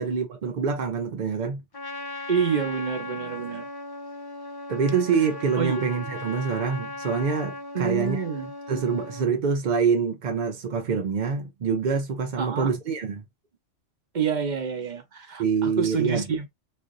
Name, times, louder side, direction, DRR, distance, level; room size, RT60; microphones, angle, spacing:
voice 1, 0.0-1.6 4.7-8.2 8.7-13.2 15.4-16.2, right 5 dB, 65° right, 0.4 m, -25 dB
Trumpet, 1.7-9.3, left 2 dB, 35° left, 0.4 m, -37 dB
voice 2, 2.3-3.7 5.6-5.9 7.7-8.5 12.4-12.7 14.1-16.5, right 6 dB, 40° right, 0.8 m, -28 dB
4.1 x 2.5 x 2.5 m
omnidirectional pair, 1.4 m